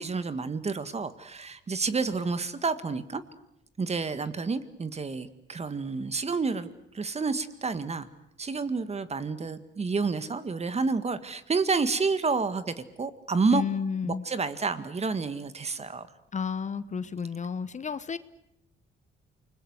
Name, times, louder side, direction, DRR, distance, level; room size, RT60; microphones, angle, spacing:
voice 1, 0.0-3.2 3.8-8.1 8.4-13.6 14.0-16.1, right 4 dB, 30° right, 12 dB, 1.8 m, -29 dB
voice 2, 13.5-14.2 16.3-18.2, left 6 dB, 35° left, 15 dB, 1.0 m, -31 dB
28.5 x 20.5 x 8.1 m, 0.77 s
cardioid pair, 90°, 20 cm